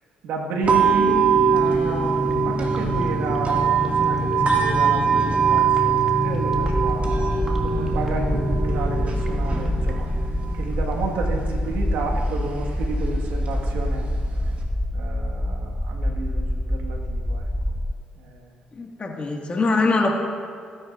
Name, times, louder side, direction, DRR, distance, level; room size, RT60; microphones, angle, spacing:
voice 1, 0.2-10.1 10.5-14.1 14.9-17.8 18.2-18.5, right 3 dB, 75° right, 0 dB, 1.8 m, -31 dB
sound 1, 0.6-14.6, right 7 dB, 50° right, 2.2 m, -24 dB
sound 2, 0.8-13.1 13.4-13.5 13.8-14.1, equal, 10° right, 2.4 m, -29 dB
sound 3, 6.5-17.9, left 1 dB, 5° left, 0.4 m, -26 dB
voice 2, 18.8-20.1, left 3 dB, 40° left, 1 dB, 2.0 m, -22 dB
17.5 x 10.0 x 2.6 m, 2.3 s
hypercardioid pair, 55°, 3 cm